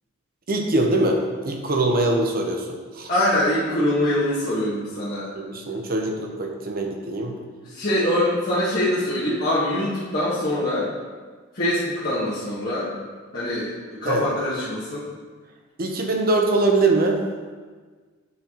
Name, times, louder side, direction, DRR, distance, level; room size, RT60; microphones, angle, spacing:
voice 1, 0.5-3.1 5.3-7.4 14.1-14.2 15.8-17.2, right 2 dB, 45° right, 2 dB, 0.8 m, -23 dB
voice 2, 3.1-5.3 7.6-10.9 11.5-12.9 13.3-15.1, left 1 dB, 50° left, -11 dB, 1.4 m, -24 dB
8.5 x 4.6 x 2.9 m, 1.5 s
head